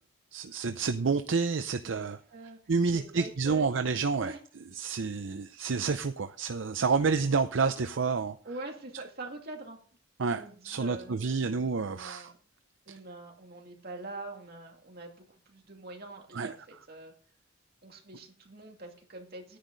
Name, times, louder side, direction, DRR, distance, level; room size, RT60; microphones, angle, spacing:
voice 1, 0.3-2.2 2.7-4.3 4.8-8.4 10.2-12.3 16.3-16.5, right 4 dB, 70° right, 9 dB, 0.6 m, -29 dB
voice 2, 2.9-3.7 4.2-4.4 6.8-7.1 8.4-9.8 10.3-12.4 12.9-15.1 15.5-17.1 17.8-19.6, right 2 dB, 50° right, 1 dB, 2.4 m, -44 dB
10.0 x 10.0 x 4.0 m, 0.43 s
head